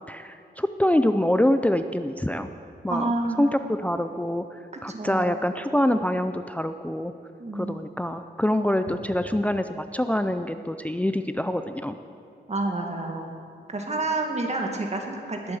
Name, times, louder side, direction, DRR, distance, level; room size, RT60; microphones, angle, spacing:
voice 1, 0.1-2.5 2.8-3.1 3.4-7.1 7.5-12.0, left 1 dB, 5° left, 9 dB, 0.5 m, -25 dB
voice 2, 2.9-3.5 4.9-5.3 7.4-7.8 12.5-13.4 13.7-15.6, right 2 dB, 35° right, 2 dB, 2.1 m, -29 dB
19.5 x 8.3 x 7.1 m, 2.5 s
wide cardioid pair, 105°, 19 cm